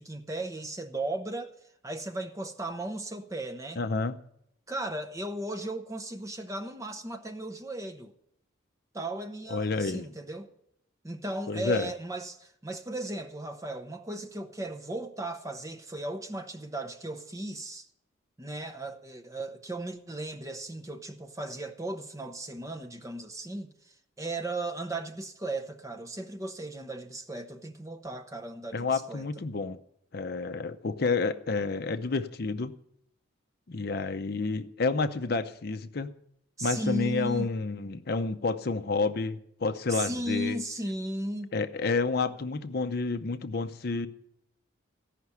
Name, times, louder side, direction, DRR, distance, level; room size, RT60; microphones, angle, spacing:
voice 1, 0.0-1.6 1.8-3.8 4.7-8.1 8.9-10.5 11.0-17.9 18.4-29.3 36.6-37.5 39.9-41.5, right 1 dB, 15° right, 0.7 m, -36 dB
voice 2, 3.8-4.1 9.5-10.1 11.5-11.9 28.7-29.8 30.1-32.7 33.7-36.1 36.6-40.6 41.5-44.1, left 4 dB, 50° left, 0.6 m, -29 dB
14.5 x 5.8 x 9.6 m
head